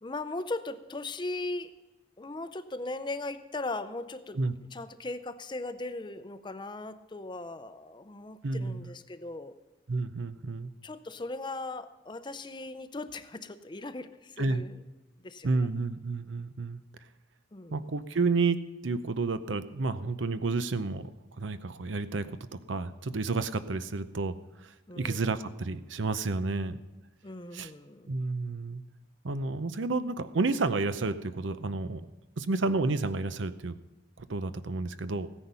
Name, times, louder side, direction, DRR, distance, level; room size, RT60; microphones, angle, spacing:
voice 1, 0.0-1.7 2.2-4.4 4.7-9.6 10.8-14.8 15.2-15.7 17.5-17.8 24.9-25.2 27.2-28.1, left 2 dB, 25° left, 11 dB, 0.6 m, -38 dB
voice 2, 8.4-8.8 9.9-10.7 14.4-14.6 15.4-16.8 17.7-22.3 22.7-24.3 24.6-26.8 27.5-27.7 28.1-28.8 29.2-32.1 32.4-33.7 34.2-35.3, right 3 dB, 80° right, 12 dB, 0.7 m, -30 dB
15.5 x 10.0 x 5.6 m, 1.1 s
head